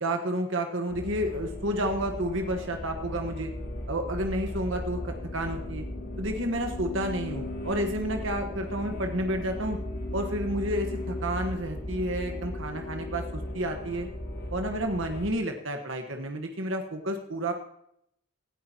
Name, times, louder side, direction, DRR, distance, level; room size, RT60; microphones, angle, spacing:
voice 1, 0.0-3.5 3.9-5.8 6.2-9.8 10.1-14.1 14.5-17.5, right 1 dB, 70° right, 4 dB, 1.3 m, -30 dB
sound 1, 0.9-15.3, left 1 dB, 85° left, 3.0 m, -36 dB
18.0 x 13.5 x 2.9 m, 0.75 s
head